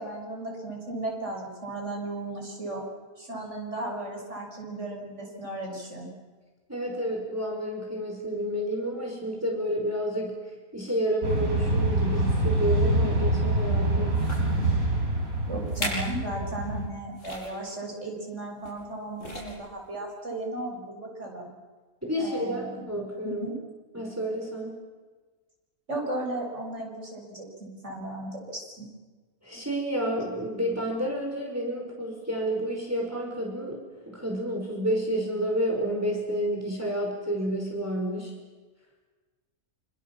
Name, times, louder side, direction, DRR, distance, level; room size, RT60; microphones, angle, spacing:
voice 1, 0.0-2.9 3.2-6.1 15.5-21.5 22.2-22.9 23.2-23.6 25.9-28.9, right 2 dB, 55° right, 0 dB, 7.0 m, -35 dB
voice 2, 6.7-10.4 10.7-14.2 22.0-23.5 23.9-24.7 29.4-33.8 34.1-38.3, equal, 10° right, 0 dB, 5.3 m, -30 dB
sound 1, 11.2-16.9, right 1 dB, 70° right, 5.4 m, -25 dB
sound 2, 13.4-13.6 14.1-14.5 15.2-15.3 15.6-16.2 16.5-16.6 17.2-17.6 18.6-18.9 19.2-19.7 20.4-20.5, left 1 dB, 60° left, 6.7 m, -36 dB
27.0 x 26.0 x 7.4 m, 1.3 s
omnidirectional pair, 1.5 m